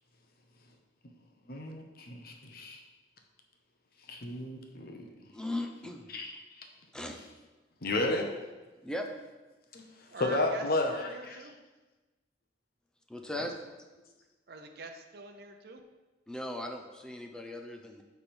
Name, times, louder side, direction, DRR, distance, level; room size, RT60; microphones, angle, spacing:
voice 1, 1.5-2.8 4.1-5.1 6.1-6.7 7.8-8.4 9.7-9.8 10.2-11.4 13.4-13.5, left 2 dB, 55° left, 3 dB, 0.9 m, -33 dB
voice 2, 5.3-6.1 6.9-7.2 8.8-9.1 13.1-13.5 16.3-18.0, left 1 dB, 5° left, 3 dB, 0.6 m, -38 dB
voice 3, 10.1-11.5 14.5-15.8, right 3 dB, 60° right, 5 dB, 0.7 m, -44 dB
10.0 x 3.5 x 4.4 m, 1.2 s
head